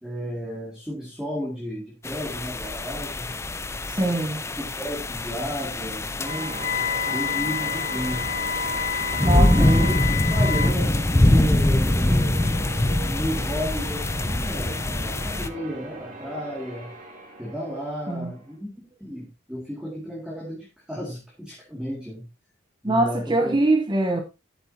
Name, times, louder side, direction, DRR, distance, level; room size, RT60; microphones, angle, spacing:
voice 1, 0.0-3.3 4.0-4.1 4.5-6.7 7.0-8.3 9.2-9.9 10.3-12.4 12.8-16.9 17.4-18.7 19.0-22.2 22.8-23.6, equal, 5° right, 2.2 m, -33 dB
sound 1, 2.0-15.5, left 1 dB, 15° left, 0.4 m, -24 dB
voice 2, 3.9-4.4 9.2-9.7 18.1-18.3 22.8-24.2, right 2 dB, 20° right, 1.0 m, -23 dB
Wind instrument woodwind instrument, 6.2-10.8, left 6 dB, 85° left, 2.8 m, -29 dB
Church bell, 6.3-18.6, right 1 dB, 40° right, 3.0 m, -40 dB
12.5 x 8.2 x 2.8 m
head